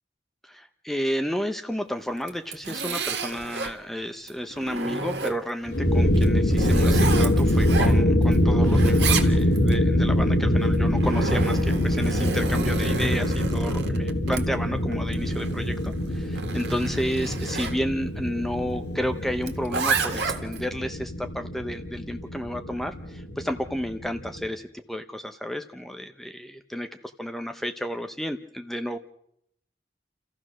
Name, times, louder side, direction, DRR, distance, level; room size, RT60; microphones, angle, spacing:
voice 1, 0.4-26.9 27.2-29.0, equal, ahead, 7 dB, 0.7 m, -31 dB
Zipper (clothing), 2.2-3.8 4.3-5.6 6.1-8.4 8.6-9.8 10.6-17.8 19.4-20.6, right 4 dB, 75° right, 2.0 m, -31 dB
sound 1, 5.7-24.5, left 1 dB, 80° left, 3.0 m, -24 dB
29.5 x 15.0 x 6.2 m, 0.74 s
head